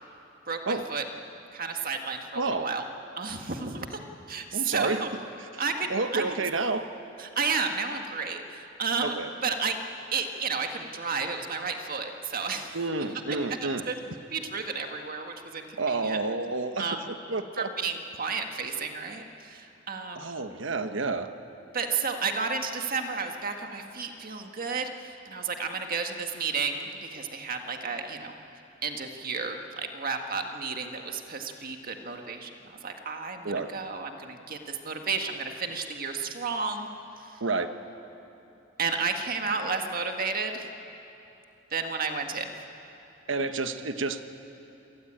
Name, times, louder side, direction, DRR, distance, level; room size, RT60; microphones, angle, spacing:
voice 1, 0.5-1.0 1.5-2.8 3.2-4.0 4.3-5.1 5.6-6.2 7.2-9.8 10.1-12.8 13.3-13.4 13.9-14.0 14.3-16.2 16.8-17.1 17.6-20.5 21.7-28.3 28.8-36.9 37.2-37.4 38.8-40.7 41.7-42.6, right 5 dB, 50° right, 4 dB, 1.8 m, -32 dB
voice 2, 2.3-2.7 4.5-5.0 5.5-5.6 5.9-6.9 9.0-9.3 12.7-13.8 15.8-17.0 17.3-17.7 20.1-21.3 33.4-33.7 37.4-37.7 43.3-44.2, right 3 dB, 75° right, 8 dB, 1.2 m, -29 dB
26.5 x 19.0 x 8.9 m, 2.9 s
head